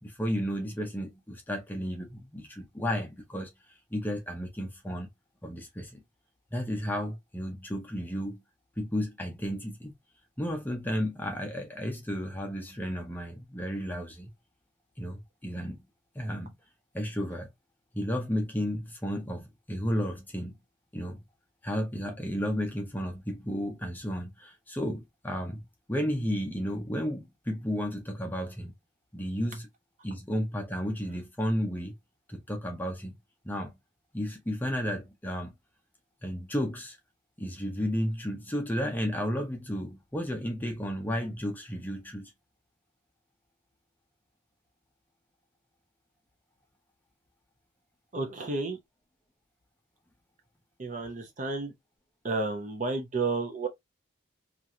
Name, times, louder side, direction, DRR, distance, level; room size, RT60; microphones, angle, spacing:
voice 1, 0.0-3.5 3.9-5.1 5.4-6.0 6.5-8.4 8.8-9.9 10.4-14.3 15.0-15.8 16.2-16.5 16.9-17.5 17.9-20.5 20.9-21.2 21.6-25.6 25.9-28.7 29.1-29.7 30.0-31.9 32.3-33.1 33.4-33.7 34.1-35.5 36.2-37.0 37.4-42.3, equal, 10° left, 0.5 m, -33 dB
voice 2, 48.1-48.8 50.8-51.7 52.2-53.7, right 3 dB, 35° right, 0.6 m, -31 dB
3.0 x 2.4 x 2.6 m
head